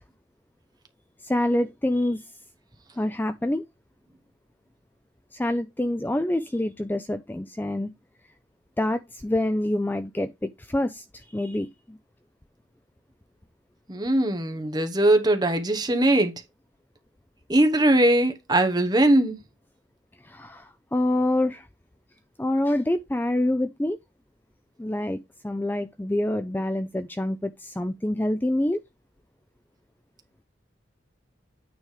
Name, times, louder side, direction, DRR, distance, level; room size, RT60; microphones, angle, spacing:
voice 1, 1.2-2.2 3.0-3.6 5.3-7.9 8.8-12.0 20.2-21.7 22.4-24.0 24.8-25.2 25.4-28.8, left 1 dB, 10° left, 0.3 m, -26 dB
voice 2, 13.9-16.3 17.5-19.4, right 1 dB, 20° right, 1.0 m, -20 dB
9.1 x 3.4 x 4.8 m
head